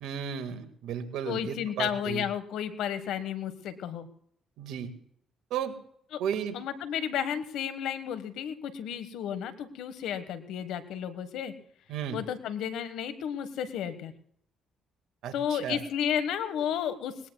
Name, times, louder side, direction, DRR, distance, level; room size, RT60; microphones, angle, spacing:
voice 1, 0.0-2.2 4.6-4.9 5.5-5.7 6.2-6.6 11.9-12.2 15.2-15.8, right 8 dB, 80° right, 7 dB, 1.9 m, -34 dB
voice 2, 1.3-4.1 6.1-6.2 6.5-11.5 12.1-14.1 15.3-17.1, left 9 dB, 80° left, 11 dB, 1.5 m, -32 dB
21.5 x 19.5 x 2.4 m, 0.66 s
supercardioid pair, 65°, 0 cm